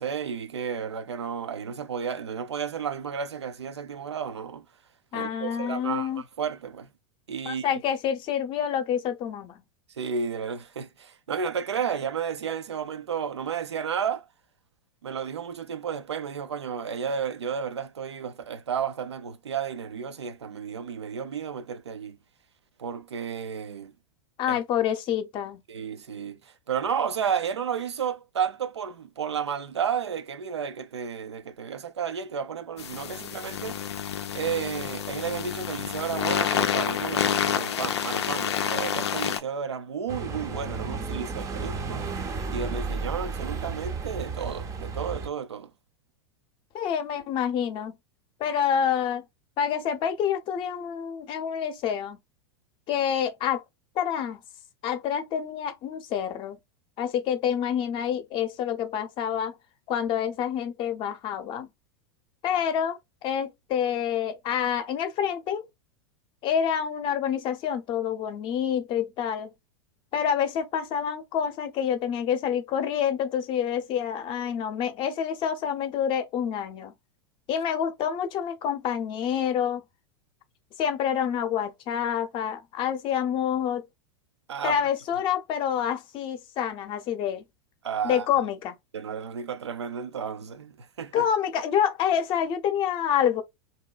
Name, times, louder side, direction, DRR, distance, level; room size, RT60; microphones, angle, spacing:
voice 1, 0.0-4.7 5.1-6.1 6.4-6.9 7.3-7.7 10.0-14.3 15.0-22.2 22.8-23.9 24.5-24.6 25.7-34.0 34.3-42.2 42.5-45.7 84.5-84.8 87.8-88.3 88.9-91.2, right 7 dB, 85° right, 0.4 m, -32 dB
voice 2, 5.1-6.2 7.4-9.6 24.4-25.6 46.7-48.0 48.4-49.2 49.6-52.2 52.9-53.6 54.0-54.4 54.8-56.6 57.0-59.5 59.9-61.7 62.4-65.6 66.4-69.5 70.1-76.9 77.5-79.8 80.8-83.8 84.6-87.4 88.0-88.7 91.1-93.4, left 8 dB, 40° left, 0.6 m, -27 dB
sound 1, 32.8-39.4, left 9 dB, 80° left, 0.4 m, -28 dB
sound 2, 40.1-45.3, right 4 dB, 25° right, 0.5 m, -33 dB
2.7 x 2.1 x 2.3 m
hypercardioid pair, 95°, 14 cm